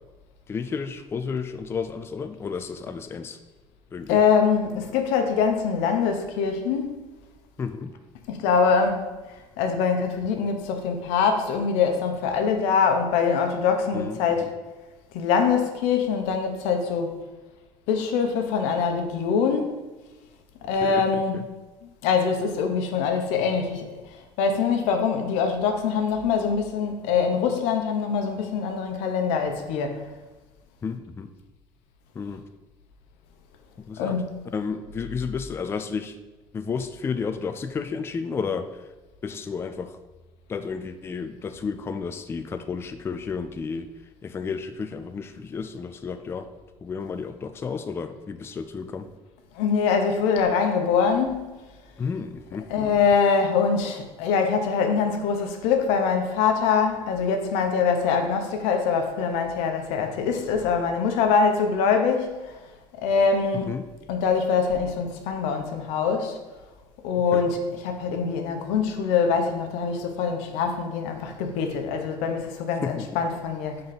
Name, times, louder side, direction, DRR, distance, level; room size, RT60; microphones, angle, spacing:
voice 1, 0.5-3.4 3.9-4.2 7.6-7.9 13.9-14.5 20.8-21.0 21.3-21.4 30.8-31.3 32.2-32.4 33.9-34.2 34.5-36.2 36.5-38.8 39.2-40.0 40.5-43.9 44.2-46.5 46.8-49.1 52.0-52.7 63.7-63.9 67.3-67.4 72.8-73.1, left 5 dB, 20° left, 9 dB, 0.4 m, -32 dB
voice 2, 4.1-6.9 8.3-9.1 9.6-14.5 15.1-17.1 17.9-19.7 20.6-21.5 21.8-30.0 34.0-34.4 49.5-51.5 52.7-62.6 63.0-63.8 64.1-66.4 67.0-73.8, left 6 dB, 90° left, 5 dB, 0.9 m, -24 dB
5.2 x 3.9 x 5.8 m, 1.2 s
cardioid pair, 120°, 11 cm